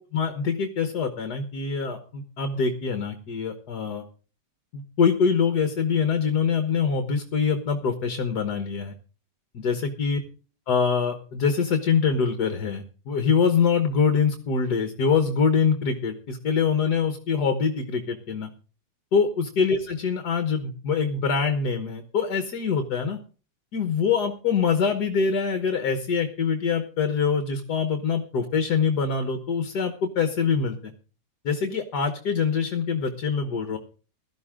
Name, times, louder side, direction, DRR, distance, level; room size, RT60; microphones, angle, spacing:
voice 1, 0.1-4.0 4.7-8.9 9.5-10.2 10.7-18.5 19.1-23.2 23.7-30.9 31.5-33.8, left 6 dB, 60° left, 8 dB, 1.8 m, -24 dB
16.5 x 12.5 x 3.7 m, 0.38 s
omnidirectional pair, 2.0 m